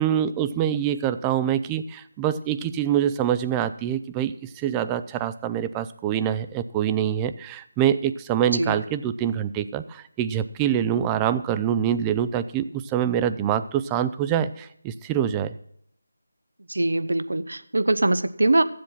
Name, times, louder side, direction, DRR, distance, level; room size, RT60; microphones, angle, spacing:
voice 1, 0.0-15.5, right 10 dB, 15° right, 12 dB, 0.4 m, -25 dB
voice 2, 16.7-18.6, right 2 dB, 70° right, 13 dB, 0.8 m, -22 dB
14.5 x 7.6 x 5.8 m, 0.69 s
figure-of-eight pair, 160°, 0 cm